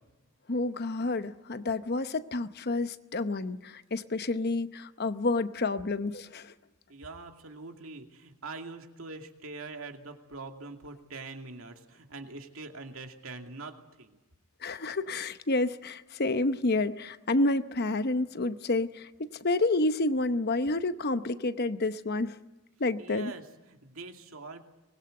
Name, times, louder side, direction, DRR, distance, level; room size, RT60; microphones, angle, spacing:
voice 1, 0.5-6.5 14.6-22.4 22.8-23.3, left 2 dB, 45° left, 0.9 m, -29 dB
voice 2, 6.9-14.2 23.0-24.6, right 3 dB, 65° right, 2.5 m, -43 dB
24.0 x 20.5 x 7.9 m
head